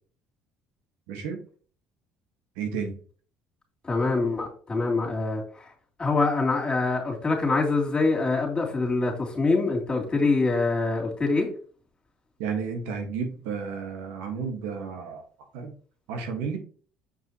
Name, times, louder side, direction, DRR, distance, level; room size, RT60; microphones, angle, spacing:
voice 1, 1.1-1.4 2.6-2.9 12.4-15.2 15.5-15.7 16.1-16.6, right 6 dB, 85° right, 1.6 m, -32 dB
voice 2, 3.8-5.4 6.0-11.5, left 3 dB, 25° left, 3.0 m, -24 dB
7.2 x 5.5 x 3.0 m
supercardioid pair, 95°, 4 cm